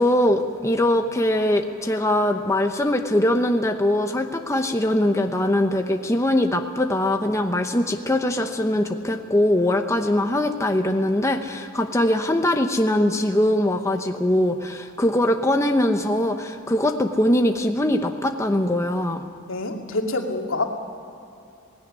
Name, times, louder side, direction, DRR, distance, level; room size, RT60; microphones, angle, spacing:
voice 1, 0.0-19.2, left 1 dB, 15° left, 4 dB, 0.9 m, -22 dB
voice 2, 19.5-20.6, left 2 dB, 75° left, 2 dB, 2.4 m, -26 dB
18.5 x 16.5 x 9.8 m, 2.7 s
head